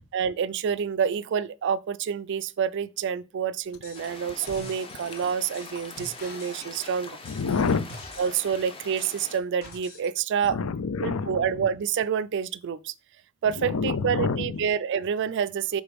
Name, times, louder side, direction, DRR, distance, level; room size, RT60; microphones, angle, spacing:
voice 1, 0.1-7.2 8.2-10.6 11.0-12.9 13.4-15.8, right 7 dB, 55° right, 0.3 m, -28 dB
sound 1, 3.8-4.1 4.4-8.5 9.0-10.1 10.4-10.5, left 2 dB, 45° left, 1.3 m, -45 dB
sound 2, 3.9-9.4, left 3 dB, 25° left, 0.8 m, -43 dB
voice 2, 7.3-7.9 10.5-11.5 13.6-14.7, left 4 dB, 85° left, 0.5 m, -27 dB
5.0 x 3.8 x 5.0 m
head